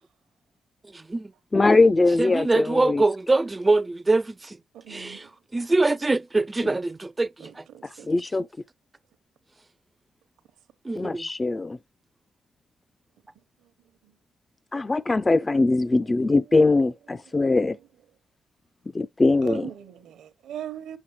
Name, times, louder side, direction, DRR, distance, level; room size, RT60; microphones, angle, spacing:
voice 1, 0.9-1.3 2.2-4.6 4.9-7.6 10.8-11.3, right 2 dB, 25° right, 0.5 m, -24 dB
voice 2, 1.5-3.0 8.1-8.5 11.0-11.8 14.7-17.8 18.9-19.7, left 3 dB, 30° left, 0.4 m, -21 dB
voice 3, 4.9-5.2 7.7-8.1 19.4-21.0, right 10 dB, 80° right, 1.0 m, -38 dB
7.4 x 5.4 x 3.1 m
supercardioid pair, 55°, 0 cm